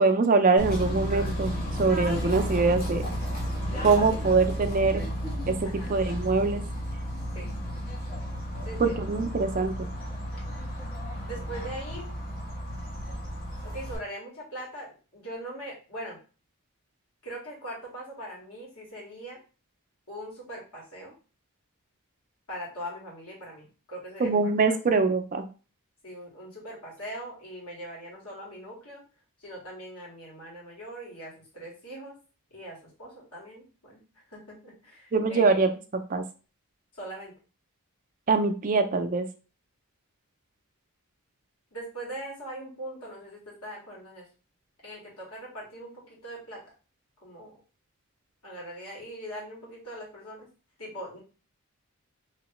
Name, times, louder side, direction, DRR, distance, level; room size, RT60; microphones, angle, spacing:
voice 1, 0.0-1.5 1.8-3.0 3.8-5.0 5.5-6.6 8.8-9.7 24.2-25.4 35.1-35.7 36.1-36.2 38.3-39.3, right 4 dB, 40° right, 7 dB, 0.4 m, -23 dB
Bird / Train, 0.6-14.0, equal, 40° left, 1.1 m, -33 dB
voice 2, 3.7-4.0 5.6-6.0 7.3-7.6 8.6-9.2 11.2-12.1 13.6-16.2 17.2-19.4 20.1-21.1 22.5-24.8 26.0-29.0 29.4-32.1 32.5-34.0 34.3-35.6 36.9-37.3 41.7-44.3 44.8-46.6 47.2-47.5 48.4-50.5 50.8-51.2, right 1 dB, 80° left, -4 dB, 1.9 m, -41 dB
3.1 x 2.9 x 3.0 m, 0.35 s
head